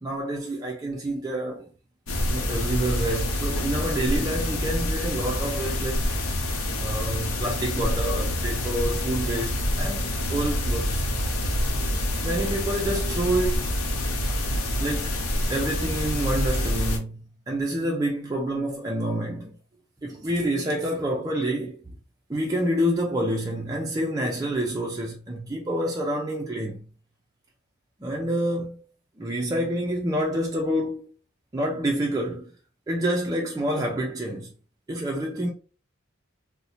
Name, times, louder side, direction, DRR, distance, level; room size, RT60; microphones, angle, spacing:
voice 1, 0.0-1.6 2.3-6.1 6.8-11.0 12.2-13.7 14.8-15.2 15.5-17.2 17.5-19.5 20.0-21.8 22.3-26.8 28.0-28.8 29.2-31.1 31.5-32.5 32.9-34.5 34.9-35.5, right 1 dB, 15° right, 0.4 m, -28 dB
sound 1, 2.1-17.0, left 1 dB, 80° left, 0.8 m, -27 dB
2.7 x 2.1 x 4.0 m
head